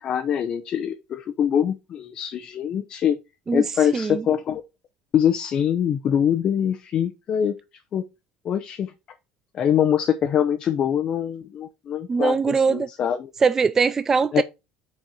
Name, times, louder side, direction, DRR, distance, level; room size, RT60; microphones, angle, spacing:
voice 1, 0.0-3.2 3.5-4.6 5.1-7.6 7.9-8.0 8.4-8.9 9.5-13.3 14.3-14.4, left 9 dB, 40° left, 0.7 m, -23 dB
voice 2, 3.9-4.3 12.1-12.9 13.4-14.4, right 5 dB, 20° right, 0.3 m, -21 dB
6.5 x 4.3 x 4.8 m
cardioid pair, 130°, 2 cm